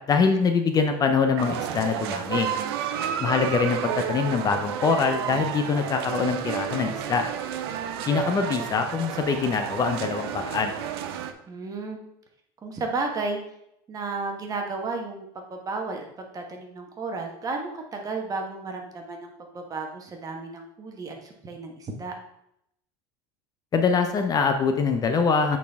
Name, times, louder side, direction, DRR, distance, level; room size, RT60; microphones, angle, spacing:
voice 1, 0.1-2.5 3.2-7.2 8.1-10.7 23.7-25.6, left 5 dB, 30° left, 6 dB, 0.6 m, -24 dB
sound 1, 1.4-11.3, right 9 dB, 90° right, 0.6 m, -31 dB
voice 2, 11.5-12.0 12.6-13.4 13.9-22.1, right 3 dB, 30° right, 2 dB, 1.3 m, -33 dB
8.3 x 4.2 x 3.5 m, 0.78 s
supercardioid pair, 125°, 13 cm